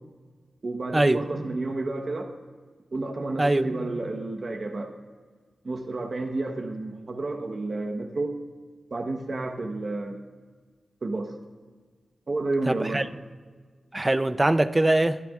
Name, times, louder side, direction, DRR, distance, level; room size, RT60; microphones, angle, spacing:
voice 1, 0.6-2.3 2.9-4.9 5.6-8.4 8.9-10.2 11.0-11.4 12.3-13.1, right 2 dB, 55° right, 1.2 m, -30 dB
voice 2, 3.4-3.7 12.7-13.1 13.9-15.2, right 1 dB, 25° right, 0.6 m, -22 dB
23.5 x 12.0 x 2.5 m
cardioid pair, 60°, 0 cm